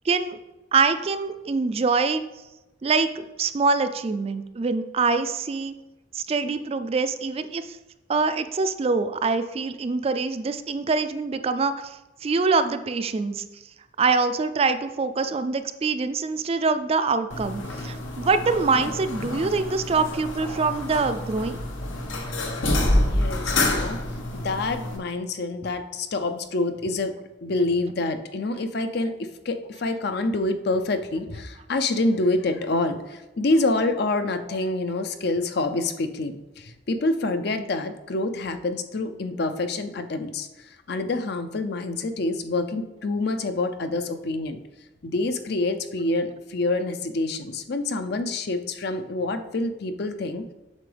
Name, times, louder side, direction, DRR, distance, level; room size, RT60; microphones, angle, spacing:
voice 1, 0.1-0.4 0.7-2.2 2.8-3.1 3.4-5.7 6.1-7.8 8.1-12.0 12.2-13.4 14.0-21.6, right 4 dB, 30° right, 10 dB, 0.3 m, -24 dB
sound 1, 17.3-25.0, left 1 dB, 90° left, 1.3 m, -27 dB
voice 2, 23.0-24.0 24.3-44.6 45.0-50.4, left 2 dB, 55° left, 8 dB, 0.5 m, -27 dB
8.1 x 6.1 x 3.4 m, 1.0 s
head